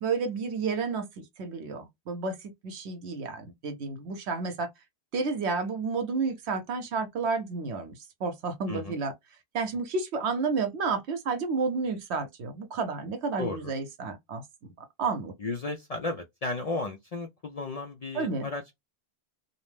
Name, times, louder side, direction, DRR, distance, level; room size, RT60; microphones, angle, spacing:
voice 1, 0.0-4.7 5.1-9.1 9.5-15.3 18.1-18.5, right 4 dB, 85° right, 1.0 m, -31 dB
voice 2, 13.4-13.7 15.4-18.7, left 3 dB, 60° left, 0.4 m, -34 dB
2.7 x 2.0 x 3.2 m
omnidirectional pair, 1.1 m